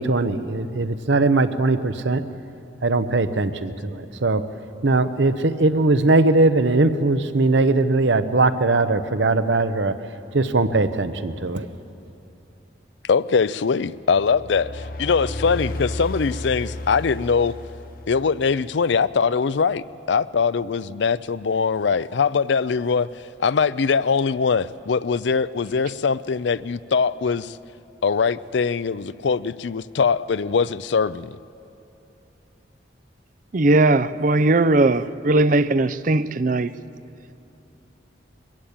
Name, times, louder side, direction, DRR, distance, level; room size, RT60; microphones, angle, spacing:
voice 1, 0.0-2.2 2.8-4.4 4.8-11.7, right 2 dB, 70° right, 0.9 m, -20 dB
voice 2, 13.0-17.5 18.1-23.1 23.4-27.5 28.0-31.4, left 5 dB, 70° left, 0.5 m, -22 dB
sound 1, 14.1-18.8, left 1 dB, 45° left, 0.9 m, -33 dB
voice 3, 33.5-36.7, right 2 dB, 45° right, 0.5 m, -18 dB
22.0 x 15.0 x 8.7 m
head